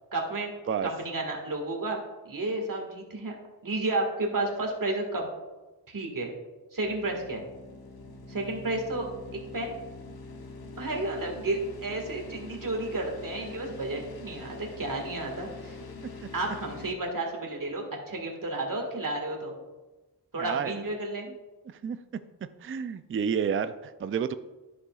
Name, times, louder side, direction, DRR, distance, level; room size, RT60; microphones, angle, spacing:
voice 1, 0.1-0.5 0.8-3.4 3.6-5.3 5.9-6.3 6.7-7.4 8.3-9.7 10.8-15.8 16.3-19.5 20.3-21.3, right 2 dB, 55° right, 1 dB, 1.8 m, -32 dB
sound 1, 6.8-16.9, left 3 dB, 65° left, 0.8 m, -44 dB
voice 2, 20.4-20.8 21.7-22.0 22.6-24.4, right 7 dB, 35° right, 11 dB, 0.4 m, -30 dB
11.0 x 6.6 x 2.4 m, 1.1 s
wide cardioid pair, 75°, 40 cm